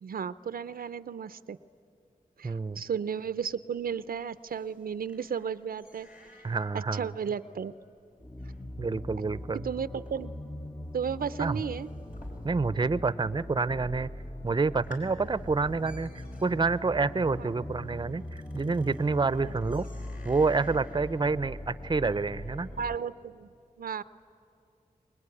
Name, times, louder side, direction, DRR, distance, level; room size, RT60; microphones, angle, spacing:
voice 1, 0.0-1.6 2.4-6.1 6.7-7.7 9.5-10.3 10.9-11.9 17.4-17.5 19.4-19.5 22.8-23.5 23.8-24.0, right 7 dB, 80° right, 15 dB, 0.6 m, -34 dB
voice 2, 2.4-2.8 6.4-7.1 8.8-9.6 11.4-11.6 12.4-14.1 14.4-16.1 16.4-19.9 20.2-22.7, right 4 dB, 30° right, 16 dB, 0.6 m, -28 dB
sound 1, 3.8-13.0 13.2-13.8 14.2-14.3 14.6-23.0, left 1 dB, 65° left, 5.3 m, -56 dB
sound 2, 8.2-23.0, left 1 dB, 15° left, 0.7 m, -41 dB
25.0 x 20.5 x 9.8 m, 2.6 s
cardioid pair, 60°, 15 cm